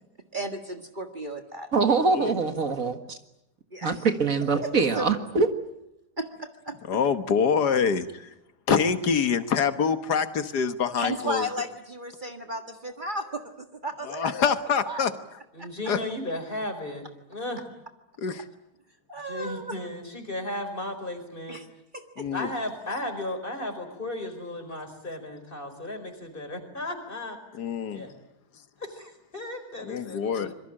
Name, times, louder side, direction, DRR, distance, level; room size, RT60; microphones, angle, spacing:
voice 1, 0.3-1.7 3.7-4.0 4.6-4.7 4.9-5.1 6.2-6.8 11.0-14.5 14.8-15.1 15.6-15.7 19.1-19.7 21.5-21.7 21.9-22.3, right 1 dB, 30° right, 5 dB, 1.7 m, -34 dB
voice 2, 1.7-3.2 3.8-5.5, right 4 dB, 55° right, 8 dB, 2.1 m, -24 dB
voice 3, 6.8-8.3 8.7-11.5 14.0-15.1 15.9-16.0 18.2-18.5 22.2-22.5 27.5-28.1 29.8-30.5, left 6 dB, 85° left, 10 dB, 1.9 m, -25 dB
voice 4, 15.5-17.6 19.2-21.6 22.3-27.4 27.9-28.1 28.8-30.5, left 1 dB, 30° left, 6 dB, 5.0 m, -35 dB
26.5 x 22.5 x 8.8 m, 0.85 s
omnidirectional pair, 1.7 m